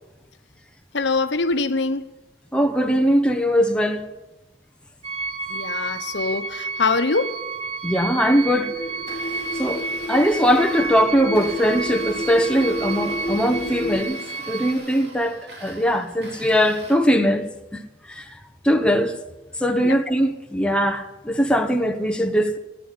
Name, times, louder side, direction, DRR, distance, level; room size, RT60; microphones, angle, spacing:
voice 1, 0.9-2.1 5.5-7.3 19.8-19.9, left 3 dB, 75° left, 1.0 m, -23 dB
voice 2, 2.5-4.0 7.8-8.8 9.5-17.8 18.1-18.3 18.6-19.2 19.6-22.6, equal, 5° left, 0.9 m, -21 dB
sound 1, 5.0-14.7, right 4 dB, 35° right, 1.4 m, -31 dB
sound 2, 8.2-14.0, left 1 dB, 45° left, 1.3 m, -31 dB
Domestic sounds home sounds, 8.9-16.9, right 2 dB, 60° right, 3.8 m, -43 dB
16.0 x 10.0 x 8.5 m
head